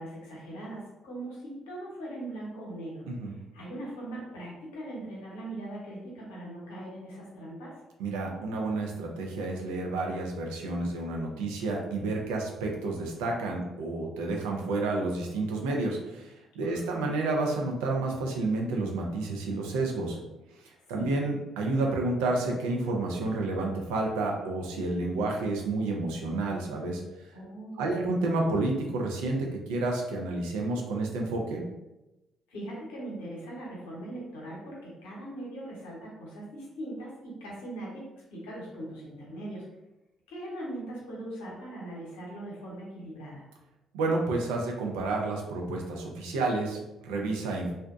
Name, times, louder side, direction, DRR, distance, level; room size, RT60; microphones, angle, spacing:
voice 1, 0.0-7.7 16.6-17.1 21.0-21.2 27.3-28.0 32.5-39.7 40.3-43.4, right 1 dB, 75° left, -5 dB, 0.8 m, -40 dB
voice 2, 8.0-20.2 20.6-27.0 27.8-31.7 43.9-47.7, right 2 dB, 75° right, 0 dB, 0.4 m, -30 dB
2.6 x 2.1 x 2.4 m, 1.0 s
figure-of-eight pair, 45°, 0 cm